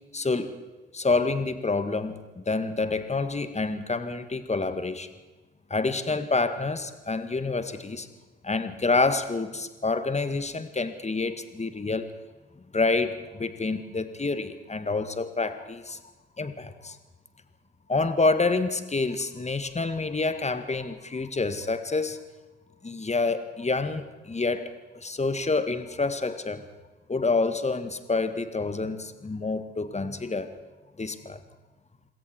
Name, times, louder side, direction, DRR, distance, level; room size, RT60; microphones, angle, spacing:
voice 1, 0.1-0.6 0.9-5.1 5.7-8.1 8.4-12.1 12.7-16.0 16.4-17.0 17.9-22.2 22.8-26.6 27.1-30.5 31.0-31.4, left 3 dB, 20° left, 10 dB, 2.0 m, -28 dB
26.5 x 21.5 x 4.7 m, 1.2 s
figure-of-eight pair, 50°, 31 cm